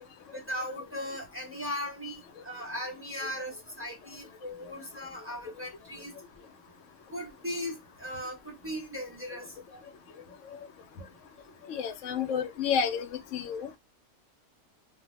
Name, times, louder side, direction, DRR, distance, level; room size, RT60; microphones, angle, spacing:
voice 1, 0.3-6.1 7.1-9.5, equal, 10° right, 1.1 m, -38 dB
voice 2, 11.7-13.1 13.3-13.8, left 7 dB, 70° left, 0.9 m, -30 dB
2.5 x 2.2 x 3.2 m
omnidirectional pair, 1.5 m